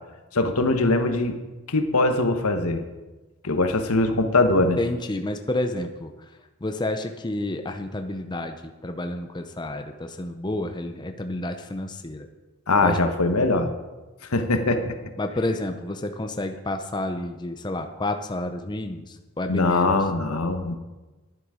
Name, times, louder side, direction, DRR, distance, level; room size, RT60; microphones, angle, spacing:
voice 1, 0.3-1.4 1.7-2.8 3.4-4.8 12.7-13.7 14.3-14.9 19.5-20.7, left 2 dB, 85° left, 7 dB, 1.2 m, -22 dB
voice 2, 4.8-6.1 6.6-8.5 8.8-12.3 12.8-13.0 15.2-20.0, left 1 dB, 20° left, 6 dB, 0.6 m, -30 dB
11.5 x 10.0 x 5.0 m, 1.2 s
head